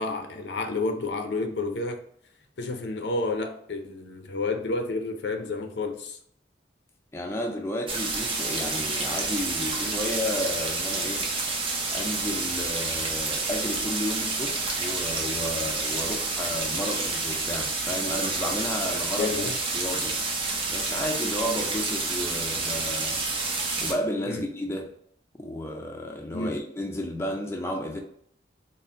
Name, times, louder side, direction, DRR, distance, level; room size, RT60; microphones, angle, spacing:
voice 1, 0.0-2.0 2.6-6.2 19.2-19.6 24.3-24.4 26.3-26.6, left 3 dB, 75° left, 0.5 m, -30 dB
voice 2, 7.1-11.3 11.9-19.4 19.7-20.2 20.7-23.2 23.8-25.0 25.4-28.0, left 1 dB, 15° left, 0.4 m, -32 dB
sound 1, 7.9-23.9, right 3 dB, 30° right, 0.6 m, -29 dB
4.1 x 2.1 x 3.7 m
head